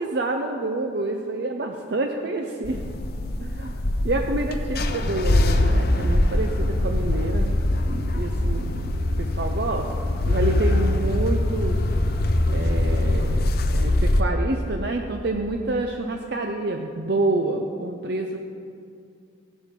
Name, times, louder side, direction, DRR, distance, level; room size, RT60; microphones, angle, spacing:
voice 1, 0.0-2.8 3.4-7.6 7.9-11.8 12.5-18.4, right 2 dB, 60° right, 3 dB, 0.6 m, -28 dB
sound 1, 2.6-14.2, left 1 dB, 55° left, 0.7 m, -23 dB
16.0 x 11.0 x 3.8 m, 2.3 s
head